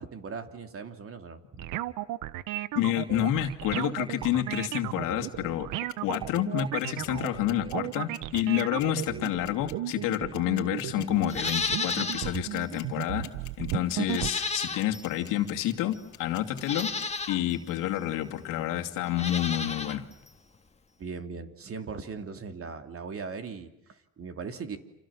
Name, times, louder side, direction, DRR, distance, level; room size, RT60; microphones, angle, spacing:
voice 1, 0.0-1.6 7.0-7.3 21.0-24.8, right 5 dB, 45° right, 7 dB, 3.1 m, -39 dB
sound 1, 1.6-14.3, right 15 dB, 80° right, 1.0 m, -34 dB
voice 2, 2.7-5.7 6.0-13.3 13.6-16.9 17.3-20.0, left 12 dB, 85° left, 4 dB, 2.6 m, -29 dB
sound 2, 5.7-17.0, left 12 dB, 65° left, 2.4 m, -45 dB
Livestock farm animals working animals, 11.3-12.4 12.7-12.8 14.1-15.1 15.9-16.0 16.6-17.4 19.1-20.0 20.3-20.4, left 4 dB, 20° left, 2.0 m, -32 dB
29.0 x 27.5 x 7.3 m, 0.88 s
cardioid pair, 90°, 31 cm